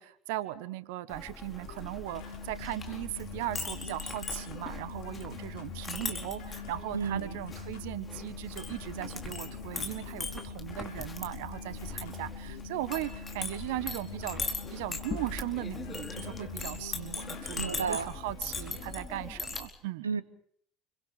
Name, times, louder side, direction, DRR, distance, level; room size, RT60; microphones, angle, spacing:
voice 1, 0.0-20.1, right 15 dB, 65° right, 15 dB, 1.4 m, -38 dB
Chink clink, 1.1-19.7, left 3 dB, 25° left, 4.6 m, -40 dB
sound 1, 1.6-19.0, left 8 dB, 65° left, 3.8 m, -49 dB
sound 2, 2.1-17.5, left 4 dB, 85° left, 2.3 m, -46 dB
voice 2, 6.9-7.4 17.6-18.1 20.0-20.2, right 5 dB, 80° right, 17 dB, 1.2 m, -31 dB
29.5 x 24.5 x 5.1 m, 0.64 s
figure-of-eight pair, 65°, 0 cm